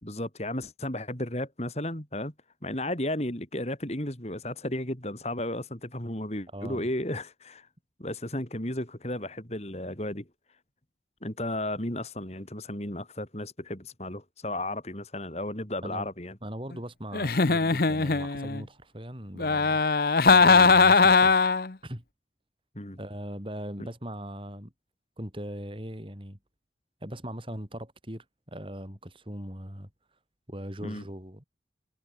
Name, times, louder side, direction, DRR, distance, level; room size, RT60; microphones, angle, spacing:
voice 1, 0.0-2.3 2.6-7.7 8.0-10.3 11.2-16.4 22.8-23.0 30.8-31.0, left 1 dB, 35° left, 3.7 m, -34 dB
voice 2, 6.5-6.9 15.8-16.1 16.4-21.4 21.8-22.0 23.0-24.7 25.2-26.4 27.0-29.9 30.5-31.4, equal, 30° right, 3.8 m, -39 dB
Giggle, 17.1-18.6 19.4-21.7, left 4 dB, 55° left, 0.9 m, -20 dB
head